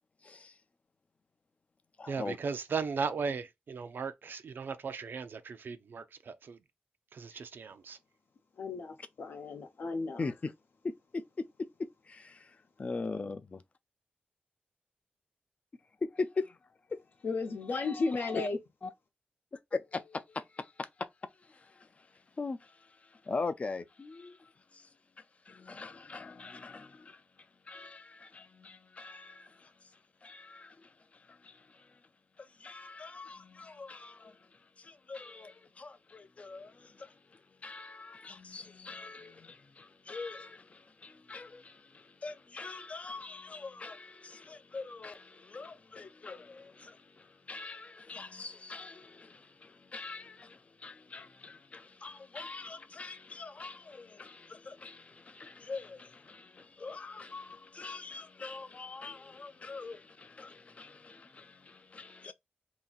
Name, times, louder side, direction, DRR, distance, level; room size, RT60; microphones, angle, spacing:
voice 1, 0.2-0.6 2.0-2.4 7.3-7.4 10.2-10.5 10.8-11.4 12.0-13.6 16.0-16.6 17.7-18.5 18.8-18.9 19.5-21.1 21.4-24.9 25.2-27.2 27.7-29.7 30.2-32.0 32.4-62.3, left 3 dB, 40° left, 0.4 m, -42 dB
voice 2, 2.1-6.6 7.1-8.0, right 5 dB, 70° right, 0.5 m, -37 dB
voice 3, 8.6-10.2 17.2-18.6, left 3 dB, 75° left, 0.8 m, -34 dB
2.8 x 2.5 x 3.9 m
wide cardioid pair, 140°, 4 cm